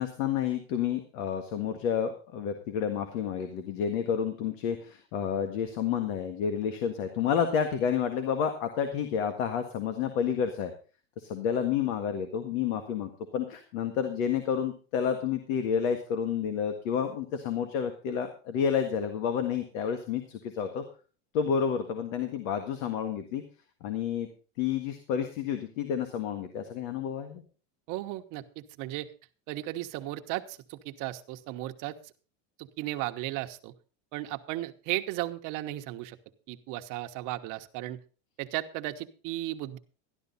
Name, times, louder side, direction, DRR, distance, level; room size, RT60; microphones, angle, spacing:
voice 1, 0.0-10.7 11.2-20.8 21.3-23.4 23.8-24.3 24.6-27.4, left 7 dB, 80° left, 8 dB, 1.8 m, -30 dB
voice 2, 27.9-29.1 29.5-32.0 32.6-33.7 34.1-36.2 36.5-38.0 38.4-39.8, right 16 dB, 55° right, 7 dB, 1.1 m, -35 dB
12.5 x 12.0 x 4.1 m, 0.36 s
supercardioid pair, 150°, 38 cm